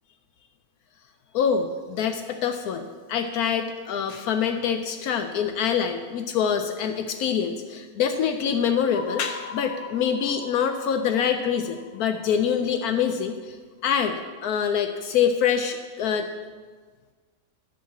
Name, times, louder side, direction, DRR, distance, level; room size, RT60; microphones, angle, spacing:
voice 1, 1.3-13.6 13.8-16.3, left 7 dB, 75° left, 7 dB, 1.1 m, -25 dB
sound 1, 8.9-13.2, left 6 dB, 45° left, 0.8 m, -41 dB
10.0 x 4.8 x 7.3 m, 1.5 s
omnidirectional pair, 1.6 m